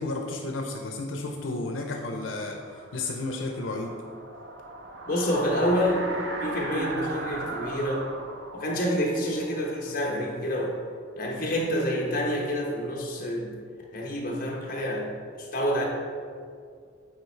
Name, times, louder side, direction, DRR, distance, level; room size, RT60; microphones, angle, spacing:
voice 1, 0.0-4.0, left 2 dB, 85° left, 2 dB, 0.6 m, -32 dB
sound 1, 1.9-10.7, right 2 dB, 60° right, 0.7 m, -38 dB
voice 2, 5.1-8.1 8.5-10.8 11.2-13.5 13.9-15.1 15.3-15.9, equal, 45° left, -2 dB, 1.1 m, -28 dB
8.8 x 3.1 x 4.5 m, 2.2 s
head